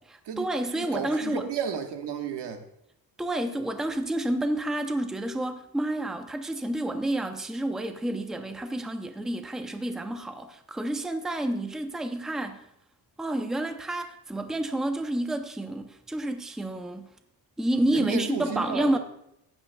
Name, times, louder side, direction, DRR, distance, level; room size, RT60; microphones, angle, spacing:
voice 1, 0.1-1.5 3.2-12.6 13.2-17.1 17.6-19.0, right 1 dB, ahead, 0.5 m, -29 dB
voice 2, 0.7-2.6 17.9-19.0, right 7 dB, 85° right, 1.4 m, -32 dB
15.5 x 10.5 x 2.2 m
cardioid pair, 160°, 40 cm